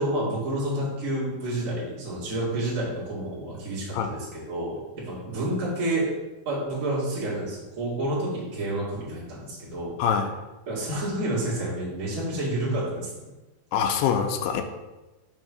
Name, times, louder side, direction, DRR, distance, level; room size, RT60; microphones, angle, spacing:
voice 1, 0.0-6.1 6.4-9.9 10.6-13.1, right 1 dB, 30° right, -6 dB, 1.5 m, -29 dB
voice 2, 10.0-10.3 13.7-14.6, left 7 dB, 85° left, 5 dB, 2.6 m, -24 dB
6.3 x 3.6 x 6.1 m, 1.1 s
omnidirectional pair, 4.6 m